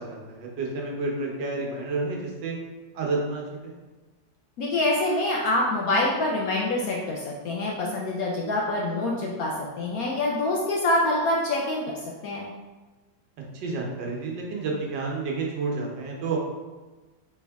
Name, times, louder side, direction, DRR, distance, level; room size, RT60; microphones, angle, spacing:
voice 1, 0.0-2.5 2.9-3.7 13.5-16.4, right 3 dB, 75° right, -1 dB, 1.5 m, -30 dB
voice 2, 4.6-11.9 12.2-12.5, left 2 dB, 70° left, -3 dB, 0.9 m, -25 dB
4.2 x 3.5 x 3.4 m, 1.2 s
omnidirectional pair, 2.0 m